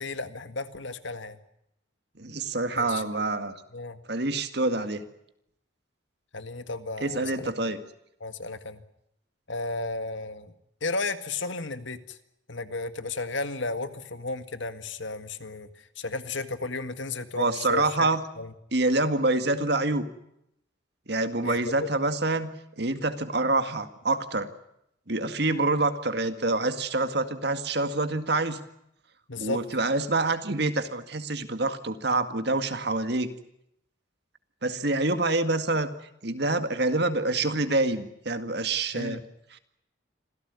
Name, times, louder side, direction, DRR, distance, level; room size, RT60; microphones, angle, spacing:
voice 1, 0.0-1.4 2.8-3.2 3.7-4.0 6.3-7.5 8.2-8.8 9.5-10.5 10.8-12.2 12.5-15.7 16.0-18.1 18.4-18.5 21.4-21.9 29.3-29.6 38.9-39.2, left 3 dB, 70° left, 10 dB, 1.8 m, -34 dB
voice 2, 2.2-3.6 4.1-5.0 7.0-7.8 17.4-18.2 18.7-20.1 21.1-22.5 22.8-24.5 25.1-28.6 29.4-33.3 34.6-35.9 36.2-39.2, right 2 dB, 55° right, 9 dB, 2.1 m, -26 dB
26.5 x 16.5 x 9.6 m, 0.79 s
head